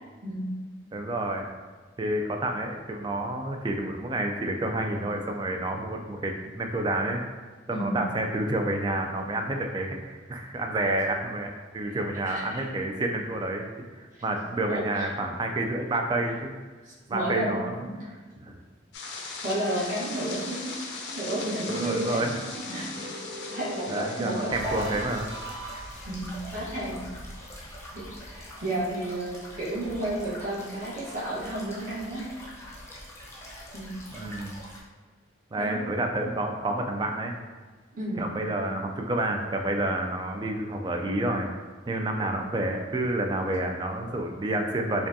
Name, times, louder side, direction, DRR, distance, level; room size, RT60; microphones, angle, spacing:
voice 1, 0.2-0.5 7.7-8.0 12.2-12.7 14.7-15.1 16.8-17.9 19.4-20.8 21.1-22.2 22.7-23.2 23.5-24.9 26.0-27.0 27.6-32.2 33.7-34.0 35.6-35.9 37.9-38.3, right 1 dB, 45° right, -7 dB, 1.1 m, -32 dB
voice 2, 0.9-1.5 2.0-7.2 7.7-13.7 14.0-16.5 17.1-17.7 18.4-18.6 21.7-22.3 23.9-25.3 34.1-34.6 35.5-37.3 38.2-41.5 41.9-45.1, right 1 dB, 25° right, 3 dB, 0.3 m, -29 dB
sound 1, 18.9-27.5, left 3 dB, 65° left, 0.5 m, -40 dB
sound 2, 21.4-26.3, right 2 dB, 65° right, 0.7 m, -41 dB
sound 3, 24.5-34.8, equal, 15° left, 0.6 m, -43 dB
4.9 x 2.3 x 2.6 m, 1.4 s
head